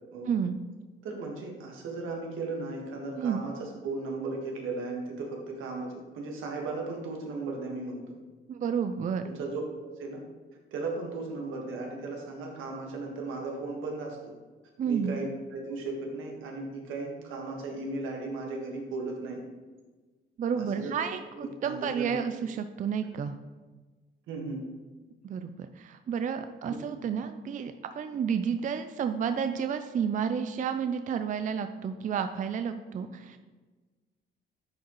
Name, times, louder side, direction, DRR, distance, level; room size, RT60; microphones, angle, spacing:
voice 1, 0.2-0.6 3.2-3.4 8.5-9.3 14.8-15.2 20.4-23.4 25.2-33.4, right 7 dB, 40° right, 9 dB, 0.4 m, -31 dB
voice 2, 1.0-8.1 9.2-10.2 10.7-14.3 14.9-19.4 20.5-20.9 21.4-22.1 24.3-24.6 26.6-27.0, right 3 dB, 85° right, 0 dB, 1.6 m, -36 dB
10.5 x 4.6 x 3.1 m, 1.3 s
cardioid pair, 90°, 20 cm